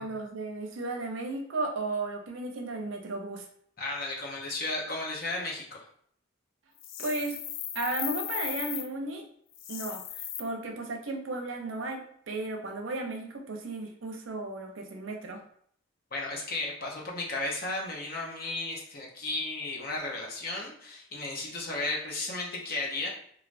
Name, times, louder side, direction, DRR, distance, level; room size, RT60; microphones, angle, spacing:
voice 1, 0.0-3.5 7.0-7.4 7.7-9.2 9.7-15.4, right 2 dB, 80° right, 3 dB, 0.5 m, -34 dB
voice 2, 3.8-5.8 16.1-23.1, left 2 dB, 50° left, -2 dB, 0.7 m, -34 dB
sound 1, 6.8-8.9 9.5-10.4, left 10 dB, 80° left, 0.3 m, -36 dB
3.2 x 2.3 x 2.5 m, 0.64 s
head